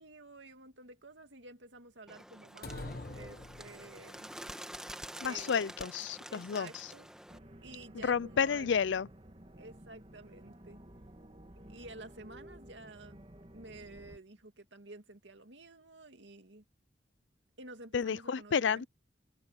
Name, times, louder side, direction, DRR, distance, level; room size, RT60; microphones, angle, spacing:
voice 1, 0.0-4.3 5.2-5.6 6.3-7.1 7.6-8.7 9.6-10.8 11.7-13.2 13.5-16.6 17.6-18.9, right 2 dB, 80° right, 2.3 m, -51 dB
Bird, 2.1-7.4, right 1 dB, 5° right, 1.2 m, -47 dB
sound 1, 2.6-4.2, left 2 dB, 55° left, 1.2 m, -44 dB
voice 2, 5.2-6.9 7.9-9.1 17.9-18.9, left 6 dB, 80° left, 0.4 m, -31 dB
sound 2, 7.3-14.2, right 1 dB, 30° right, 1.6 m, -53 dB
head